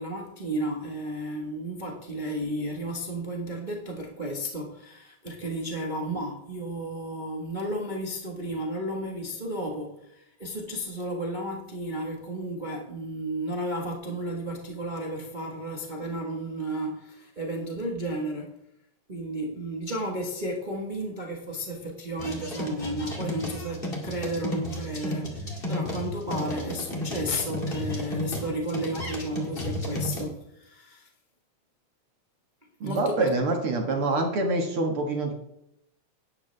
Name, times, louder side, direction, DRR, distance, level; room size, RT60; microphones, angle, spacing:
voice 1, 0.0-18.6 19.1-31.1 32.8-33.3, right 1 dB, 80° right, 0 dB, 0.4 m, -33 dB
sound 1, 22.2-30.2, left 1 dB, 20° left, 2.0 m, -33 dB
voice 2, 32.8-35.3, right 2 dB, 50° right, 2 dB, 2.1 m, -26 dB
12.0 x 9.9 x 3.4 m, 0.80 s
omnidirectional pair, 3.5 m